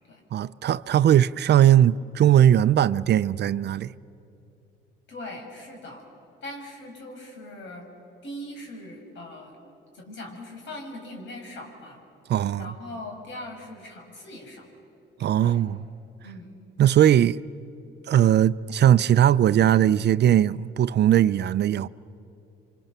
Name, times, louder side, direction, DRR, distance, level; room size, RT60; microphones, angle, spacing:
voice 1, 0.3-3.9 12.3-12.7 15.2-15.8 16.8-17.4 18.1-21.9, right 11 dB, 60° right, 0.5 m, -19 dB
voice 2, 5.1-6.1 6.4-7.9 8.2-9.6 9.9-12.0 12.6-14.7 15.4-15.6 16.2-16.6, left 1 dB, 70° left, 6.4 m, -40 dB
29.0 x 25.0 x 6.8 m
cardioid pair, 90°, 20 cm